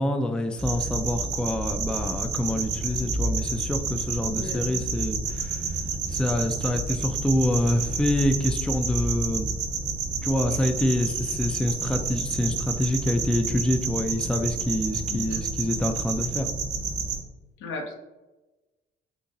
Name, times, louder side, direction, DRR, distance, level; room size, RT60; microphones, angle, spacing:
voice 1, 0.0-5.6 6.1-9.5 10.2-16.5, left 1 dB, 5° left, 6 dB, 0.3 m, -26 dB
sound 1, 0.6-17.2, right 4 dB, 65° right, 1.0 m, -30 dB
voice 2, 4.3-4.6 15.1-15.4 17.6-17.9, left 3 dB, 80° left, 2 dB, 0.8 m, -35 dB
4.0 x 2.8 x 2.5 m, 1.1 s
cardioid pair, 90°, 20 cm